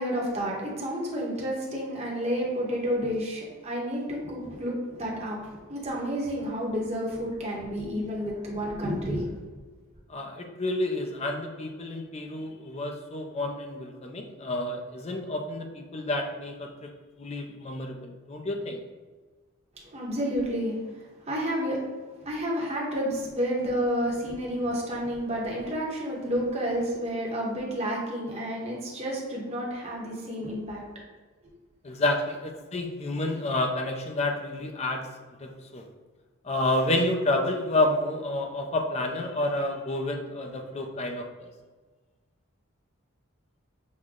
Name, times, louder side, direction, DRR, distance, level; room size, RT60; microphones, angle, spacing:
voice 1, 0.0-9.3 19.8-21.8 22.2-30.8, equal, 30° right, -3 dB, 1.0 m, -30 dB
voice 2, 10.1-16.9 17.2-18.8 31.8-35.1 35.4-35.8 36.4-41.5, left 2 dB, 30° left, 3 dB, 0.5 m, -29 dB
6.3 x 2.2 x 3.7 m, 1.4 s
head